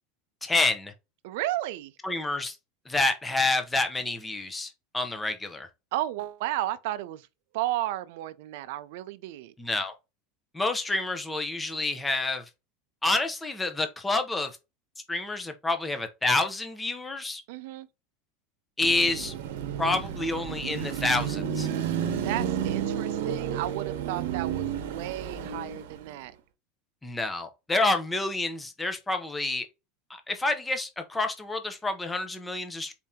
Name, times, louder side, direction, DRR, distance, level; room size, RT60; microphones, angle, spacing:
voice 1, 0.4-0.9 2.0-2.6 2.9-5.7 9.6-9.9 10.5-12.4 13.0-14.5 15.1-17.4 18.8-19.3 19.8-21.7 27.0-29.7 30.1-32.9, left 2 dB, 10° left, 0.6 m, -28 dB
voice 2, 1.2-1.9 5.9-7.3 7.5-9.5 17.5-17.9 22.2-26.3, right 14 dB, 60° right, 0.5 m, -33 dB
Car passing by / Traffic noise roadway noise / Engine, 18.8-26.1, right 9 dB, 80° right, 0.9 m, -31 dB
4.3 x 2.8 x 3.6 m
supercardioid pair, 170°, 0 cm